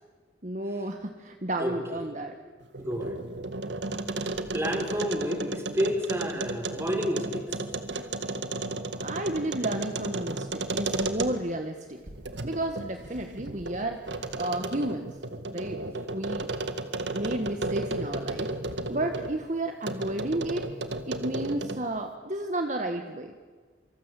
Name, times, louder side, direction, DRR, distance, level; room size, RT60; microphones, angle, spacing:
voice 1, 0.4-2.3 9.0-12.0 12.4-14.0 14.4-15.1 15.5-15.8 16.1-16.5 17.1-18.6 18.9-20.7 21.1-23.3, right 1 dB, 40° right, 5 dB, 1.6 m, -32 dB
voice 2, 1.6-2.1 2.8-3.1 4.5-7.6 15.9-16.1, equal, 15° right, 3 dB, 5.1 m, -30 dB
sound 1, 2.6-11.6 12.1-19.4 19.8-21.9, right 2 dB, 75° right, 2.0 m, -34 dB
27.5 x 25.5 x 8.4 m, 1.5 s
head